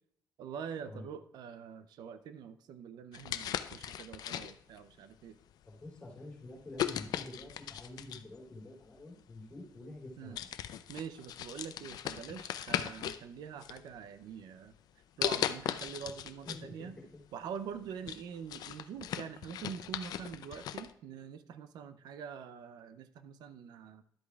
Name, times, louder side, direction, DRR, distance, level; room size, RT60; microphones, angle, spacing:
voice 1, 0.4-5.4 10.2-10.4 10.9-14.7 15.2-16.9 17.3-24.0, right 7 dB, 85° right, 11 dB, 0.6 m, -45 dB
sound 1, 3.1-4.8 5.5-5.7 6.8-8.3 9.4-9.5 10.0-10.1 10.3-13.2 13.6-14.3 15.2-16.6 17.0-17.1 17.6-20.9, left 10 dB, 75° left, 0.4 m, -38 dB
voice 2, 5.6-10.4 16.4-17.0, left 2 dB, 15° left, -4 dB, 3.3 m, -48 dB
11.5 x 8.2 x 2.4 m, 0.67 s
cardioid pair, 155°, 7 cm